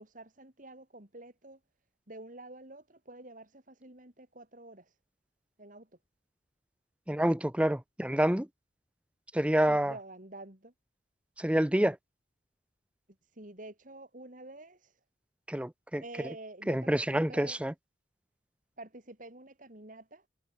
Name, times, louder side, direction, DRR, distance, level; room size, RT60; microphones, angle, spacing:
voice 1, 0.0-1.6 2.1-4.9 5.6-5.9 9.7-10.7 13.3-15.0 16.0-17.6 18.8-20.2, right 2 dB, 45° right, 3.3 m, -48 dB
voice 2, 7.1-8.5 9.3-9.9 11.4-12.0 15.5-16.0 16.7-17.7, right 1 dB, 5° right, 0.6 m, -27 dB
head